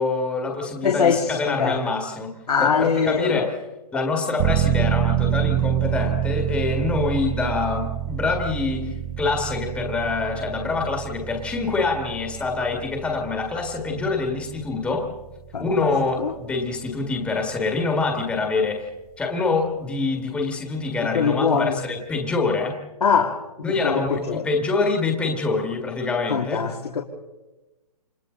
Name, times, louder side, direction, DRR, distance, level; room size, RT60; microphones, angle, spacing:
voice 1, 0.0-2.3 2.6-3.5 3.9-15.1 15.6-18.9 19.2-22.8 23.6-26.6, left 3 dB, 5° left, 1 dB, 1.8 m, -25 dB
voice 2, 0.8-1.8 2.5-3.5 15.5-15.7 16.2-16.3 21.0-21.8 23.0-24.5 26.3-27.0, left 6 dB, 85° left, 1 dB, 2.5 m, -22 dB
sound 1, 4.4-16.9 17.3-17.4, right 12 dB, 20° right, 0.7 m, -27 dB
29.5 x 25.0 x 3.9 m, 1.1 s
hypercardioid pair, 160°, 19 cm